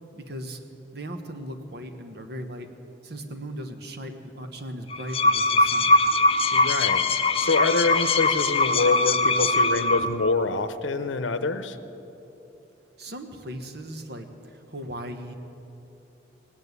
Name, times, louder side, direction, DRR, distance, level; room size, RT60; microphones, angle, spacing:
voice 1, 0.1-0.6 0.9-2.7 3.0-6.0 13.0-14.3 14.7-15.3, right 1 dB, 60° right, 7 dB, 1.2 m, -37 dB
sound 1, 4.9-10.3, left 2 dB, 30° left, 0.6 m, -21 dB
voice 2, 6.5-7.0 7.4-11.8, left 3 dB, 80° left, 10 dB, 0.7 m, -25 dB
18.5 x 9.2 x 8.2 m, 3.0 s
head